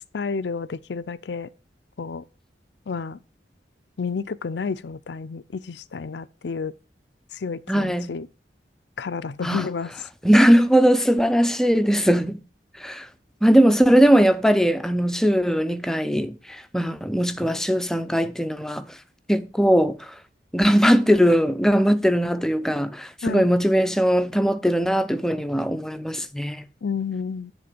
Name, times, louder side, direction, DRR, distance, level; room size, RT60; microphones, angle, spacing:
voice 1, 0.1-1.5 2.0-2.2 2.9-3.2 4.0-6.7 7.3-8.3 9.0-9.9 23.2-23.5 26.8-27.5, left 5 dB, 80° left, 0.5 m, -30 dB
voice 2, 7.7-8.1 9.4-9.6 10.2-12.4 12.8-13.1 13.4-18.8 19.3-20.0 20.5-26.7, equal, 5° left, 0.5 m, -19 dB
10.0 x 3.8 x 6.8 m
head